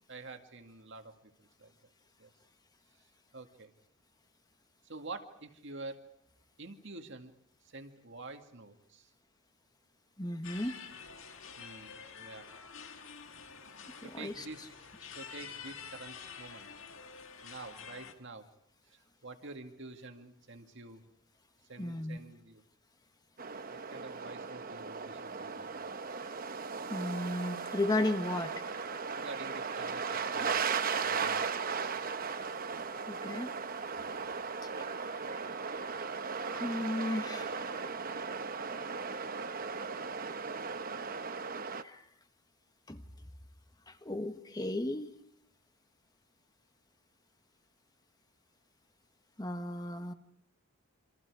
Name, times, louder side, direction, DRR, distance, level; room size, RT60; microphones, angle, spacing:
voice 1, 0.1-1.7 2.2-2.3 3.3-3.7 4.8-6.0 6.6-7.3 7.6-9.1 11.6-12.5 14.0-14.7 15.1-16.7 17.4-18.5 18.9-21.0 21.7-22.6 23.7-25.7 29.1-30.7 31.0-31.6, right 3 dB, 55° right, 5 dB, 2.1 m, -48 dB
voice 2, 10.2-10.8 14.0-14.4 21.8-22.2 26.9-28.5 33.1-33.5 34.8-34.9 36.4-37.6 41.8-42.0 42.9-43.0 43.9-45.1 49.4-50.1, left 1 dB, 20° left, 8 dB, 1.4 m, -34 dB
sound 1, 10.4-18.1, left 6 dB, 65° left, 2.0 m, -48 dB
sound 2, 23.4-41.8, right 5 dB, 40° right, 0.9 m, -37 dB
28.0 x 26.0 x 4.9 m, 0.71 s
head